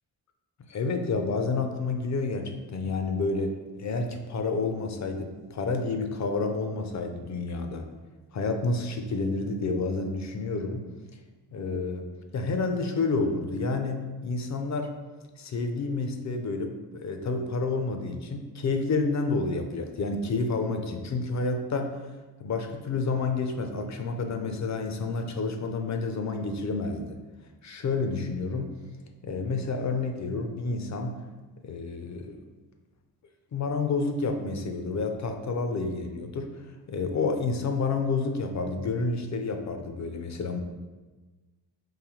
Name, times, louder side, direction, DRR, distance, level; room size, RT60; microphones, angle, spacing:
voice 1, 0.7-7.9 8.3-10.9 11.5-12.1 12.3-14.9 15.4-22.0 22.4-27.2 27.6-28.7 29.2-31.2 31.6-32.6 33.5-36.6 36.9-40.6, left 3 dB, 45° left, 5 dB, 0.5 m, -29 dB
3.9 x 2.6 x 3.1 m, 1.3 s
cardioid pair, 75°, 40 cm